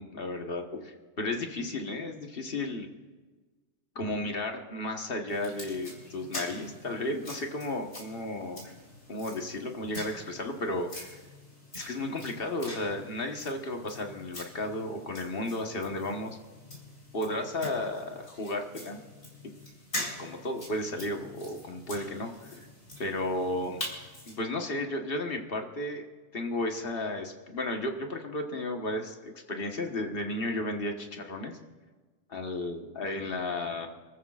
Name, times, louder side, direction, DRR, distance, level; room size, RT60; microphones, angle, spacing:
voice 1, 0.0-2.9 3.9-8.6 9.1-11.2 11.7-16.4 17.1-19.0 20.0-22.7 23.0-23.8 24.3-26.0 26.3-31.6 32.3-33.9, left 1 dB, 55° left, 3 dB, 1.6 m, -33 dB
sound 1, 5.3-24.4, left 1 dB, 85° left, 4.5 m, -44 dB
28.5 x 14.0 x 2.5 m, 1.3 s
omnidirectional pair, 1.1 m